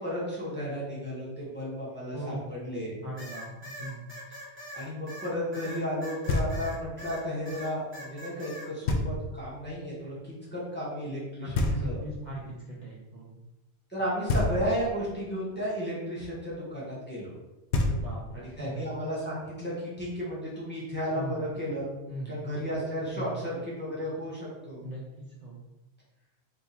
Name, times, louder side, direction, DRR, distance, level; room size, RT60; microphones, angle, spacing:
voice 1, 0.0-2.9 4.7-12.0 13.9-17.3 18.3-21.9 22.3-24.8, equal, 10° left, -8 dB, 1.4 m, -33 dB
voice 2, 2.1-2.5 3.0-4.1 11.4-13.4 17.8-18.8 21.1-21.4 22.1-22.4 23.1-23.4 24.8-25.0 25.4-25.6, right 1 dB, 45° right, -5 dB, 0.8 m, -39 dB
sound 1, 3.2-7.2 7.5-8.7, equal, 10° right, 0.9 m, -42 dB
Knock, 6.3-6.9 8.9-9.5 11.5-12.4 14.3-15.1 17.4-17.5 17.7-18.5, left 2 dB, 85° left, 0.9 m, -29 dB
3.6 x 2.6 x 4.3 m, 1.0 s
omnidirectional pair, 1.1 m